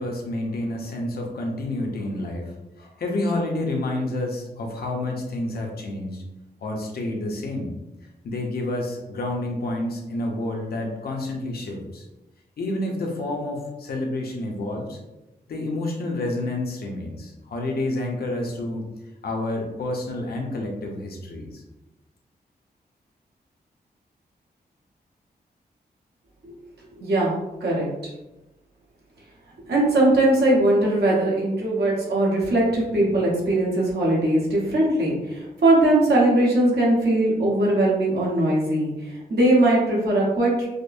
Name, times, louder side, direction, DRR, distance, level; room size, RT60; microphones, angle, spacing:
voice 1, 0.0-6.2 6.6-7.7 8.2-12.0 12.6-15.0 15.5-18.9 19.2-21.6, left 2 dB, 65° left, 1 dB, 0.8 m, -29 dB
voice 2, 27.0-27.3 27.6-27.9 29.7-40.7, right 1 dB, 80° right, -5 dB, 1.2 m, -20 dB
5.1 x 2.1 x 2.6 m, 0.99 s
wide cardioid pair, 120°, 17 cm